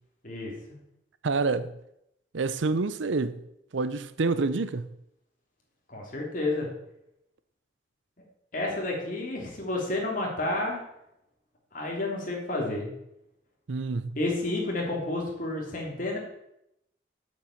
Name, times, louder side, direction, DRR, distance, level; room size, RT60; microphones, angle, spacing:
voice 1, 0.2-0.8 5.9-6.7 8.5-10.8 11.7-12.9 14.1-16.2, left 2 dB, 45° left, 3.2 m, -30 dB
voice 2, 1.2-1.7 2.3-3.4 3.7-4.9 13.7-14.1, right 3 dB, 85° right, 0.6 m, -27 dB
8.3 x 7.7 x 7.2 m
head